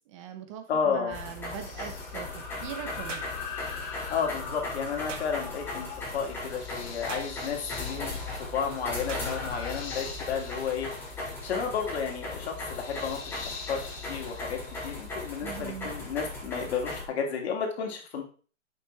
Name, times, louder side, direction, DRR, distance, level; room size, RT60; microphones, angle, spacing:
voice 1, 0.1-3.3 15.4-15.9, right 9 dB, 25° right, 8 dB, 0.8 m, -41 dB
voice 2, 0.7-1.2 4.1-10.9 11.4-13.8 14.1-18.2, left 6 dB, 55° left, 2 dB, 2.5 m, -32 dB
sound 1, 1.1-17.0, left 2 dB, 5° left, 2.3 m, -38 dB
sound 2, 1.5-15.4, left 5 dB, 25° left, 1.6 m, -43 dB
sound 3, 3.1-3.4 5.1-5.3 7.1-7.4 9.1-9.3, right 5 dB, 70° right, 1.8 m, -40 dB
10.0 x 6.5 x 3.3 m, 0.39 s
hypercardioid pair, 155°, 39 cm